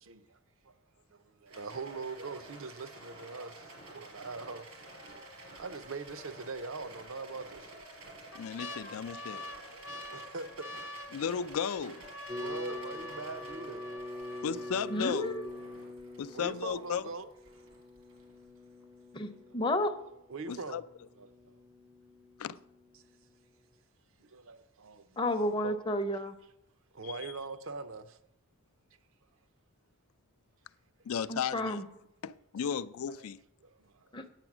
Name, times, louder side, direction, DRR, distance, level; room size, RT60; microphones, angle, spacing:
voice 1, 0.0-0.4 0.6-0.7 1.1-5.2 5.6-7.8 9.7-10.5 12.3-13.9 14.3-14.4 15.7-17.3 20.3-20.9 21.2-21.5 24.2-25.7 26.9-28.2 32.6-32.7 33.1-33.3 33.6-34.1, right 3 dB, 65° right, 0.6 m, -43 dB
Rattle, 1.5-18.8, right 1 dB, 90° right, 3.9 m, -51 dB
sound 1, 5.1-5.6 6.1-6.2 7.1-7.6 8.1-16.0 16.7-16.8 17.0-17.5 18.0-18.1, left 1 dB, 55° left, 0.8 m, -46 dB
voice 2, 8.3-9.5 11.1-12.0 14.4-15.3 16.2-17.0 20.5-20.8 22.4-22.6 27.0-27.1 31.1-31.8 32.2-33.4, left 7 dB, 75° left, 0.4 m, -35 dB
sound 2, 12.3-23.3, left 1 dB, 25° right, 0.5 m, -46 dB
voice 3, 14.9-15.5 19.1-19.9 25.2-26.4 31.3-31.8 34.1-34.2, left 1 dB, 20° left, 0.6 m, -31 dB
9.0 x 7.8 x 6.0 m
head